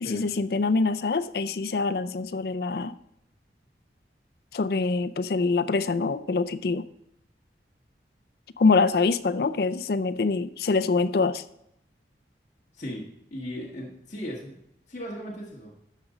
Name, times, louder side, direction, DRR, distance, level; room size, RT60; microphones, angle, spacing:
voice 1, 0.0-2.9 4.5-6.9 8.6-11.4, left 4 dB, 55° left, 13 dB, 0.4 m, -25 dB
voice 2, 12.7-13.0 13.3-14.5 14.9-15.7, equal, 40° left, -5 dB, 1.5 m, -36 dB
13.0 x 5.1 x 4.0 m, 0.76 s
head